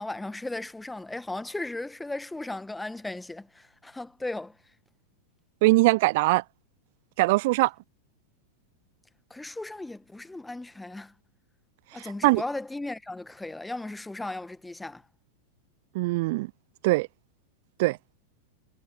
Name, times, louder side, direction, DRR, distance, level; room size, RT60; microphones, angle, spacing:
voice 1, 0.0-4.6 9.3-11.1 11.9-15.0, left 2 dB, 5° left, 1.6 m, -36 dB
voice 2, 5.6-6.4 7.2-7.7 12.2-12.4 15.9-16.5 16.8-17.1 17.8-18.0, right 22 dB, 50° right, 0.6 m, -21 dB
figure-of-eight pair, 90°, 0 cm